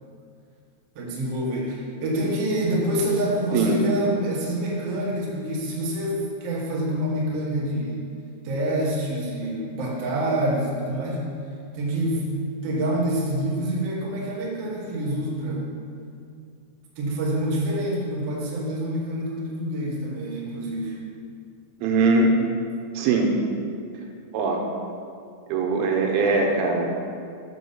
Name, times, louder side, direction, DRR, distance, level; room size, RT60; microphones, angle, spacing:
voice 1, 0.9-8.1 8.4-11.2 11.7-12.2 12.6-15.7 16.9-21.0, right 1 dB, 70° right, -5 dB, 1.5 m, -26 dB
voice 2, 21.8-22.4 23.0-23.3 24.3-24.6 25.5-27.0, right 3 dB, 85° right, 1 dB, 3.4 m, -21 dB
7.3 x 5.4 x 6.8 m, 2.4 s
omnidirectional pair, 5.5 m